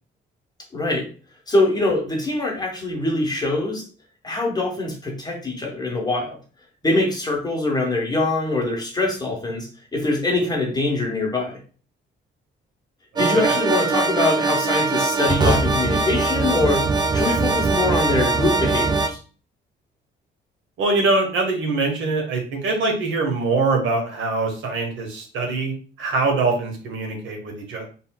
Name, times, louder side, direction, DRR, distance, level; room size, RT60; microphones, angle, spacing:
voice 1, 0.7-1.1 1.5-3.8 4.2-6.4 6.8-11.6 13.2-16.9 17.1-19.2, left 2 dB, 20° left, 0 dB, 1.3 m, -23 dB
voice 2, 13.1-13.5 20.8-27.9, right 3 dB, 75° right, 2 dB, 1.3 m, -23 dB
sound 1, 13.2-19.1, right 3 dB, 20° right, 0.5 m, -21 dB
4.0 x 3.7 x 2.3 m, 0.38 s
cardioid pair, 90°, 20 cm